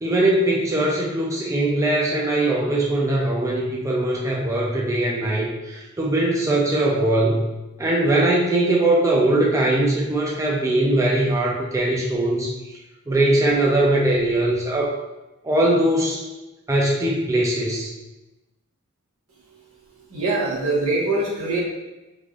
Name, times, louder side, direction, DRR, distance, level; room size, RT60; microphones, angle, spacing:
voice 1, 0.0-7.5 7.8-12.5 13.1-14.9 15.4-16.2 16.7-17.9, right 1 dB, 15° right, -3 dB, 0.4 m, -21 dB
voice 2, 20.1-21.6, right 2 dB, 85° right, -5 dB, 1.0 m, -23 dB
3.2 x 2.5 x 2.3 m, 1.0 s
head